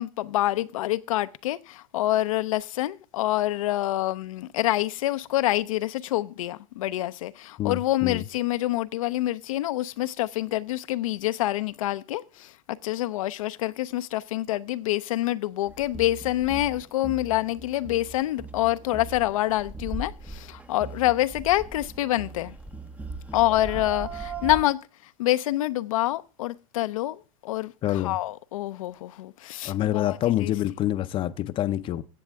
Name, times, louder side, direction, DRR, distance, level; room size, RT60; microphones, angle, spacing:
voice 1, 0.0-22.5 23.3-30.5, left 15 dB, 75° left, 0.6 m, -27 dB
voice 2, 7.6-8.2 27.8-28.2 29.6-32.0, left 13 dB, 30° left, 0.6 m, -26 dB
sound 1, 15.7-24.6, right 3 dB, 10° right, 0.6 m, -39 dB
16.0 x 7.1 x 3.5 m
supercardioid pair, 125°, 18 cm